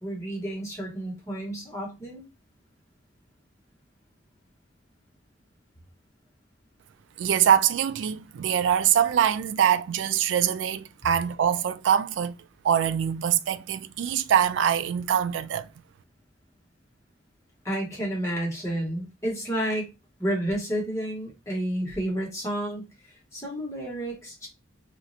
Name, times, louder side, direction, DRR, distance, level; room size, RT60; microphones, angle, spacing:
voice 1, 0.0-2.2 17.6-19.9 20.2-24.5, right 1 dB, 15° left, 1.2 m, -31 dB
voice 2, 7.2-12.3 12.6-15.7, right 9 dB, 85° right, 0.3 m, -23 dB
3.1 x 2.4 x 2.6 m
head